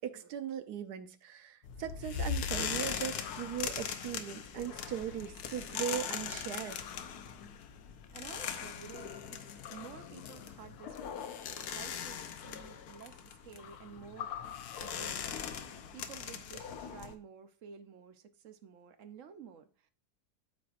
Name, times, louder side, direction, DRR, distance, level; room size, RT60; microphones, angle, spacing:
voice 1, 0.0-6.8, right 9 dB, 75° right, 1.2 m, -39 dB
sound 1, 1.6-17.1, left 7 dB, 70° left, 1.2 m, -40 dB
voice 2, 8.1-14.3 14.8-15.5 15.9-19.9, right 7 dB, 60° right, 0.9 m, -52 dB
13.0 x 4.4 x 2.5 m
omnidirectional pair, 1.8 m